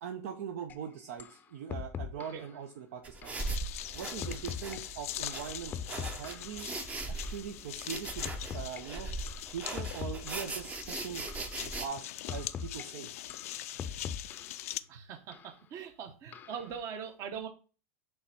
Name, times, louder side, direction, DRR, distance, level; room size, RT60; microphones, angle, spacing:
voice 1, 0.0-3.4 3.9-6.7 7.1-9.1 9.5-11.3 11.6-13.1, right 8 dB, 75° right, 5 dB, 0.8 m, -41 dB
sound 1, 0.7-0.8 1.2-1.4 1.7-2.5 3.2-3.4 4.2-4.8 5.2-6.6 7.2-7.4 8.2-8.8 9.3-9.5 9.8-10.6 11.3-11.5 12.3-12.8 13.3-14.6 15.3-15.5 16.3-16.7, left 7 dB, 20° left, 0.5 m, -41 dB
sound 2, 3.0-11.9, right 3 dB, 20° right, 0.6 m, -40 dB
sound 3, 3.4-14.8, left 14 dB, 80° left, 0.4 m, -42 dB
voice 2, 14.9-17.5, right 7 dB, 40° right, 7 dB, 0.9 m, -41 dB
5.5 x 3.5 x 5.7 m, 0.36 s
supercardioid pair, 135°, 8 cm